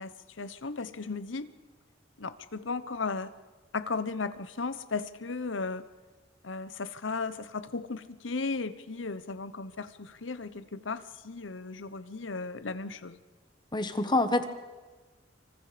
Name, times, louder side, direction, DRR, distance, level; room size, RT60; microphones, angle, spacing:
voice 1, 0.0-1.5 2.2-3.3 3.7-5.8 6.4-13.2, left 4 dB, 90° left, 14 dB, 1.0 m, -35 dB
voice 2, 13.7-14.5, left 2 dB, 25° left, 9 dB, 1.3 m, -26 dB
26.5 x 24.5 x 5.1 m, 1.3 s
head